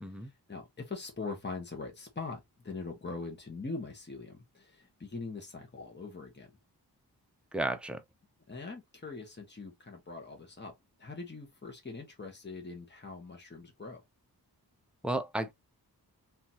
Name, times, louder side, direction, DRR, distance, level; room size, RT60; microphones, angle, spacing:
voice 1, 0.2-6.5 8.5-10.7 11.0-14.0, left 3 dB, 25° left, 1.2 m, -42 dB
voice 2, 7.5-8.0 15.0-15.5, right 1 dB, 5° right, 0.6 m, -33 dB
4.0 x 2.8 x 2.9 m
wide cardioid pair, 105°, 39 cm